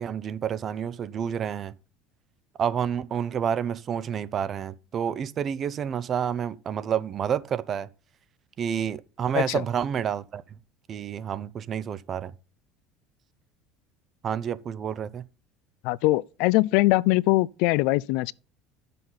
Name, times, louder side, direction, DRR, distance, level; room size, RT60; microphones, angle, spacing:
voice 1, 0.0-1.7 2.6-7.9 8.6-10.4 10.9-12.3 14.2-15.3, right 8 dB, 45° right, 0.6 m, -29 dB
voice 2, 15.8-18.3, left 20 dB, 75° left, 0.3 m, -22 dB
9.4 x 6.7 x 4.0 m
supercardioid pair, 90°, 0 cm